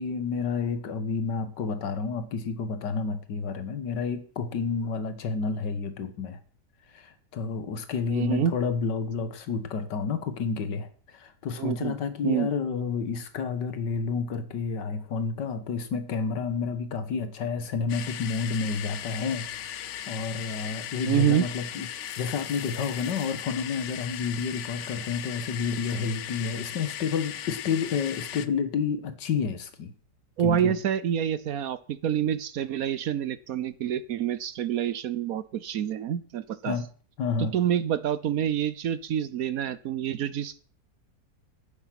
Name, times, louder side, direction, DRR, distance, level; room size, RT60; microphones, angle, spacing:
voice 1, 0.0-6.4 6.9-19.5 19.7-29.9 30.4-30.8 36.6-36.9 37.2-37.6, left 5 dB, 90° left, 11 dB, 1.9 m, -30 dB
voice 2, 8.1-8.5 11.6-11.9 12.2-12.5 21.1-21.5 30.4-36.8 37.4-40.6, right 9 dB, 65° right, 16 dB, 1.0 m, -27 dB
sound 1, 17.9-28.5, left 10 dB, 60° left, 0.8 m, -38 dB
10.5 x 9.6 x 5.9 m, 0.42 s
omnidirectional pair, 1.8 m